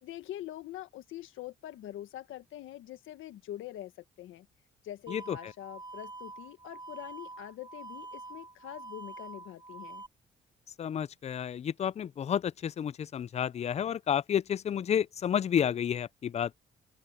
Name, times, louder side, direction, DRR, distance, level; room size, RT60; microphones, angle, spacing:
voice 1, 0.0-3.9 4.2-4.5 4.8-10.0, left 13 dB, 85° left, 1.6 m, -44 dB
sound 1, 5.1-10.1, right 3 dB, 20° right, 1.7 m, -46 dB
voice 2, 10.8-16.5, left 9 dB, 35° left, 0.4 m, -30 dB
open air
cardioid pair, 90°, 20 cm